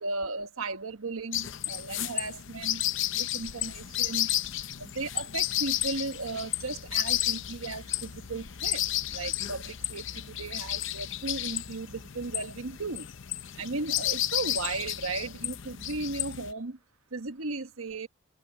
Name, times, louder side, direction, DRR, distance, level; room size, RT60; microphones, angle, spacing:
voice 1, 0.0-2.8 3.1-4.3 4.8-8.8 9.1-13.1 13.6-16.8 17.1-18.1, right 3 dB, 80° right, 1.3 m, -36 dB
sound 1, 1.3-16.5, left 13 dB, 60° left, 0.7 m, -32 dB
open air
head